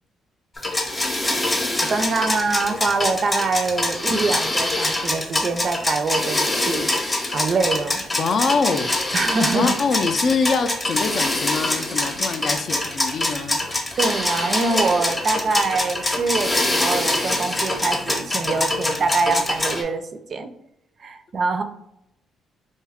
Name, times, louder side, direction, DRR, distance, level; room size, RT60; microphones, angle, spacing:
sound 1, 0.6-19.8, left 1 dB, 20° left, 0.7 m, -24 dB
voice 1, 1.8-6.9 7.3-8.0 9.1-9.7 14.0-20.0 20.3-20.5 21.0-21.6, right 3 dB, 50° right, 7 dB, 0.4 m, -24 dB
voice 2, 8.2-8.9 9.5-13.7, left 4 dB, 55° left, 8 dB, 0.3 m, -24 dB
2.7 x 2.3 x 3.4 m, 0.79 s
cardioid pair, 90°, 0 cm